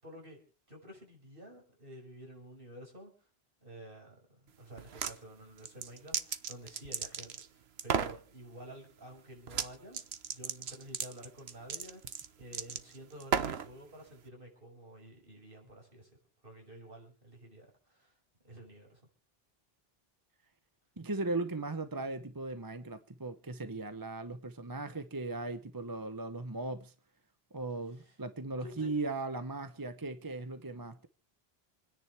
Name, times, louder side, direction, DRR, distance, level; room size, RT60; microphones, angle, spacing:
voice 1, 0.0-0.4 0.7-3.1 3.6-10.0 10.3-16.1 16.4-18.1 18.4-19.0 27.9-28.1 28.6-28.9, right 1 dB, 60° right, 6.1 m, -51 dB
sound 1, 4.8-5.2 5.6-7.5 7.8-8.2 9.5-9.7 9.9-13.7, right 7 dB, 90° right, 1.2 m, -34 dB
voice 2, 21.0-26.9 27.5-31.1, right 3 dB, 20° right, 0.8 m, -38 dB
28.5 x 10.0 x 3.4 m
omnidirectional pair, 1.0 m